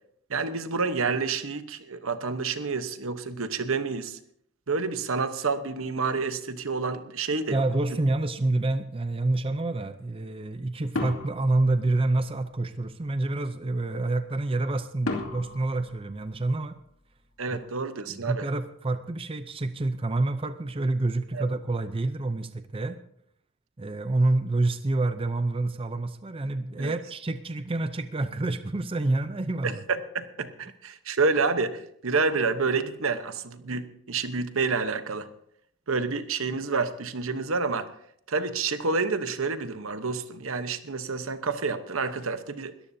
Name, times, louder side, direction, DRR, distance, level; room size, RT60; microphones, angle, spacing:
voice 1, 0.3-4.2 4.7-7.6 17.4-18.5 21.3-21.5 26.8-26.9 29.6-35.3 35.9-37.9 38.3-42.7, right 4 dB, 75° right, 11 dB, 1.0 m, -29 dB
voice 2, 7.5-16.7 17.5-17.6 18.1-23.0 23.8-29.8, right 2 dB, 25° right, 10 dB, 0.5 m, -28 dB
sound 1, 11.0-12.5 15.1-16.9, left 2 dB, 80° left, 2.5 m, -35 dB
21.5 x 14.0 x 2.7 m, 0.69 s
head